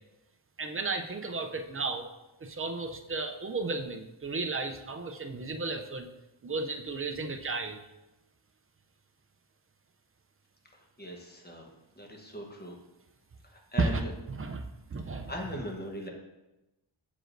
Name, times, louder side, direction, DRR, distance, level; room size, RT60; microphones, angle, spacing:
voice 1, 0.6-2.1 2.4-6.1 6.4-7.8 13.8-14.7 14.9-15.6, right 3 dB, 30° right, 6 dB, 0.4 m, -33 dB
voice 2, 11.0-11.6 12.0-12.7 13.7-13.9 15.3-16.1, equal, 20° left, 0 dB, 1.0 m, -39 dB
7.6 x 4.8 x 2.6 m, 0.99 s
wide cardioid pair, 100°, 48 cm